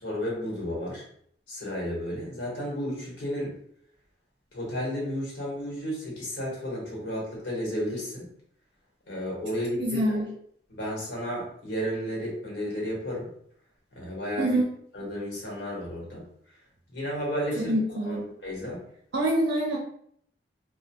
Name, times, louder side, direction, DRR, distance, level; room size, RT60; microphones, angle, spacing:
voice 1, 0.0-1.0 1.5-3.5 4.5-8.3 9.1-10.2 10.7-13.3 13.9-14.6 14.9-16.2 16.9-17.7 18.0-18.8, equal, 80° left, -4 dB, 1.1 m, -32 dB
voice 2, 9.8-10.3 14.4-14.6 17.6-18.3 19.1-19.8, right 1 dB, 75° right, -4 dB, 0.5 m, -25 dB
2.2 x 2.2 x 2.8 m, 0.66 s
head